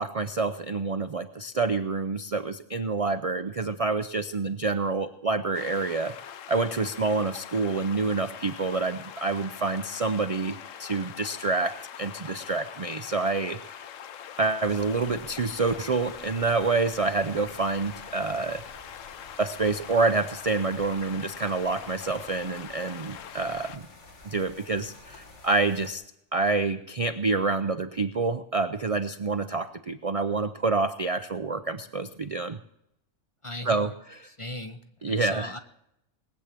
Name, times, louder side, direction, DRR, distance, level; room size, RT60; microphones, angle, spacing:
voice 1, 0.0-6.2 6.5-13.8 14.4-18.6 19.4-23.9 24.2-26.0 26.3-32.6 33.7-34.3 35.0-35.5, right 3 dB, 45° right, 9 dB, 0.5 m, -27 dB
sound 1, 5.5-23.8, left 9 dB, 85° left, 1.1 m, -43 dB
sound 2, 14.6-25.9, left 3 dB, 70° left, 1.9 m, -50 dB
voice 2, 33.4-33.9 34.2-35.6, left 1 dB, 30° left, 8 dB, 0.7 m, -38 dB
20.0 x 8.3 x 7.4 m, 0.79 s
omnidirectional pair, 1.3 m